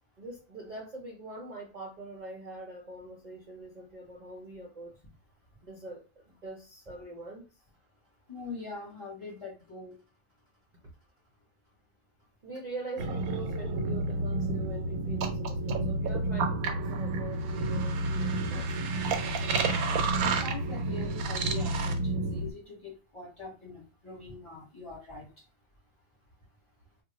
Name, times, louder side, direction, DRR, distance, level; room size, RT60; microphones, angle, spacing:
voice 1, 0.2-5.0 5.6-7.5 12.4-18.8, right 2 dB, 50° right, 0.5 m, -43 dB
voice 2, 8.3-10.0 20.1-25.5, left 3 dB, 25° left, 1.0 m, -43 dB
sound 1, 13.0-22.5, right 2 dB, 90° right, 1.0 m, -30 dB
2.5 x 2.1 x 3.9 m
omnidirectional pair, 1.4 m